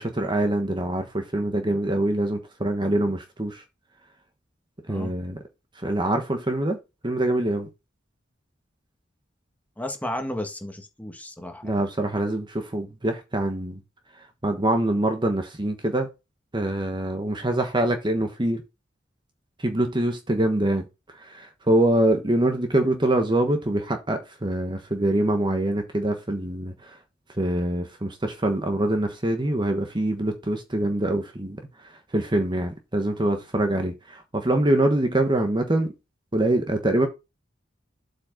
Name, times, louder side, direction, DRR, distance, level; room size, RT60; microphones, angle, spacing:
voice 1, 0.0-3.6 4.9-5.4 5.8-6.8 7.0-7.7 11.6-13.8 14.4-16.1 16.5-18.6 19.6-20.8 21.2-27.0 27.4-31.6 32.1-35.9 36.3-37.1, right 1 dB, 25° right, 1.2 m, -24 dB
voice 2, 9.8-11.8, left 1 dB, 10° left, 1.5 m, -33 dB
8.0 x 5.4 x 3.8 m
head